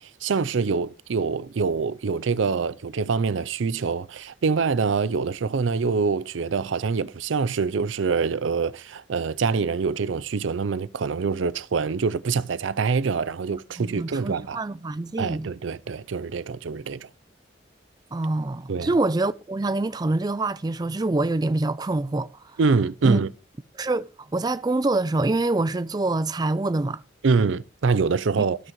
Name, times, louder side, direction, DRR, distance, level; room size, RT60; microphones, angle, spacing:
voice 1, 0.0-14.6 15.2-17.1 18.7-18.9 22.6-23.3 27.2-28.6, right 5 dB, 80° right, 0.5 m, -25 dB
voice 2, 13.8-15.5 18.1-22.3 23.0-23.2 23.8-24.1 24.3-27.0, right 2 dB, 20° right, 0.4 m, -25 dB
16.5 x 6.3 x 3.0 m
head